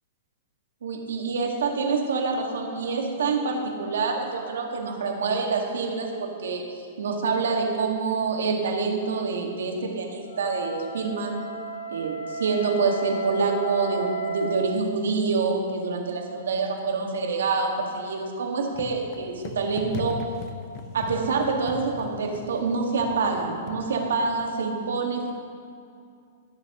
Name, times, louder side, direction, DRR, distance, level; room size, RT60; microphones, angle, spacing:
voice 1, 0.8-6.6 7.0-11.4 11.9-20.2 20.9-25.3, right 4 dB, 80° right, 1 dB, 1.8 m, -26 dB
Wind instrument woodwind instrument, 10.2-14.9, right 4 dB, 85° left, 0.7 m, -34 dB
sound 1, 18.7-24.6, left 6 dB, 40° left, 0.7 m, -39 dB
19.5 x 6.9 x 3.0 m, 2.4 s
hypercardioid pair, 130°, 0 cm